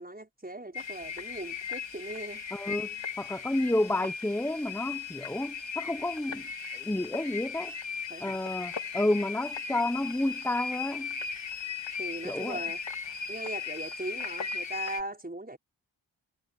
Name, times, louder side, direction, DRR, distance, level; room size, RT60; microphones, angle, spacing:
voice 1, 0.0-2.4 8.1-8.4 12.0-12.8 13.3-15.6, right 1 dB, 20° right, 5.8 m, -39 dB
sound 1, 0.7-15.0, left 6 dB, 75° left, 2.3 m, -37 dB
voice 2, 2.5-6.5 6.7-7.7 8.2-11.1 12.2-12.6, left 1 dB, 5° left, 0.9 m, -30 dB
wide cardioid pair, 75°, 46 cm